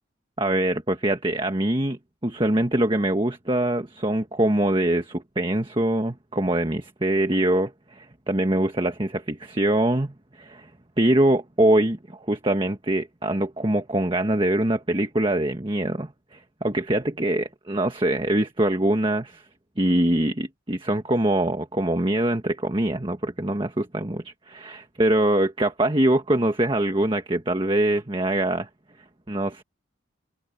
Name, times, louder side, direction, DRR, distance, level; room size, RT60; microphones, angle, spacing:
voice 1, 0.4-10.7 11.0-19.4 19.8-28.7 29.3-29.6, right 1 dB, 25° right, 1.5 m, -23 dB
head